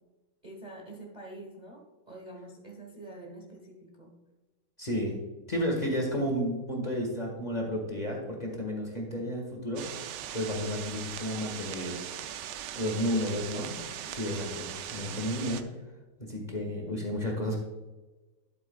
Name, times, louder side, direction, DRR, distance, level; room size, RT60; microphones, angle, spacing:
voice 1, 0.4-4.2 12.9-14.1, right 1 dB, 25° right, 0 dB, 1.1 m, -47 dB
voice 2, 4.8-5.2 5.5-9.8 10.3-12.0 12.7-13.7 14.1-15.6 16.2-17.6, equal, 25° left, 0 dB, 1.4 m, -32 dB
sound 1, 9.8-15.6, right 10 dB, 70° right, 1.1 m, -40 dB
12.0 x 7.9 x 2.3 m, 1.2 s
omnidirectional pair, 2.1 m